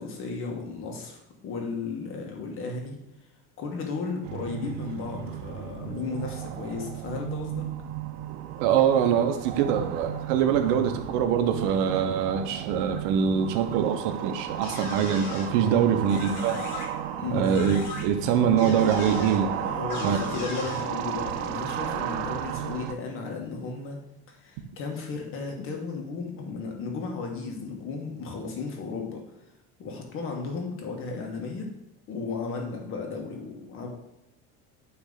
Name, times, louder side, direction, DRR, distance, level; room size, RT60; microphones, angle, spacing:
voice 1, 0.0-3.0 3.6-7.6 15.6-15.8 17.2-17.5 19.6-24.0 24.4-29.2 29.8-31.7 32.1-33.9, left 4 dB, 40° left, 2 dB, 1.5 m, -34 dB
sound 1, 4.2-22.9, right 10 dB, 85° right, 0.7 m, -34 dB
voice 2, 8.6-16.6 17.3-19.5 20.0-20.2, right 8 dB, 65° right, 6 dB, 1.0 m, -24 dB
sound 2, 14.6-15.5 16.0-16.8 17.4-18.0 18.6-19.4 19.9-20.8, left 3 dB, 65° left, 2.0 m, -38 dB
9.5 x 3.3 x 4.0 m, 0.94 s
cardioid pair, 150°, 31 cm